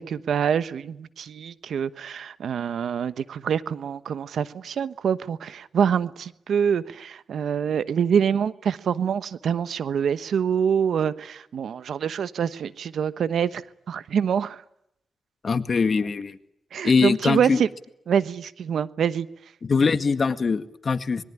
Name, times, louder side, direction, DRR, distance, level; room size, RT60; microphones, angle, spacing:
voice 1, 0.0-14.6 16.7-17.7 18.1-19.3, right 7 dB, 80° right, 1.1 m, -25 dB
voice 2, 15.4-16.4 16.8-17.6 19.6-21.2, left 5 dB, 55° left, 1.9 m, -22 dB
26.0 x 22.0 x 10.0 m
cardioid pair, 55°, 0 cm